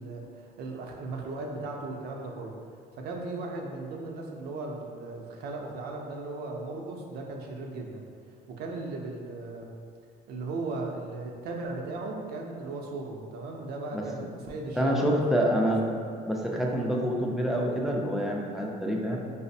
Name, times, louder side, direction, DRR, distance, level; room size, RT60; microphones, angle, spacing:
voice 1, 0.0-2.6 3.0-8.1 8.5-9.7 10.3-15.7, right 2 dB, 70° right, 1 dB, 0.5 m, -37 dB
voice 2, 14.8-15.8 16.3-19.2, equal, ahead, -2 dB, 0.4 m, -27 dB
4.9 x 2.0 x 2.6 m, 2.2 s
cardioid pair, 110°, 17 cm